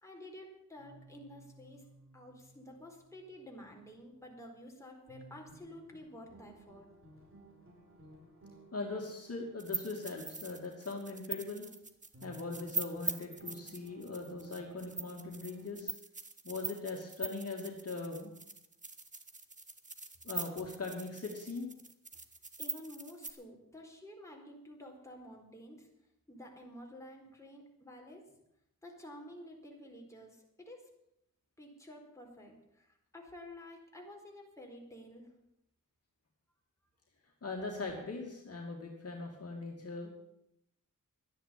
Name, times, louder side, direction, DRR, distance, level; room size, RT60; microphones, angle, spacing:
voice 1, 0.0-1.8 2.1-6.9 22.6-25.9 26.3-28.4 28.8-30.9 31.6-35.3, left 1 dB, 10° left, 0 dB, 4.2 m, -51 dB
sound 1, 0.8-4.6 5.1-11.9 12.1-15.7, right 1 dB, 40° right, 5.0 m, -59 dB
voice 2, 8.7-11.7 12.2-15.9 16.4-18.3 20.2-21.7 37.4-40.1, left 3 dB, 45° left, 0 dB, 2.7 m, -40 dB
sound 2, 9.6-23.3, right 3 dB, 25° right, 1.4 m, -42 dB
12.5 x 10.0 x 8.7 m, 0.79 s
wide cardioid pair, 110°, 33 cm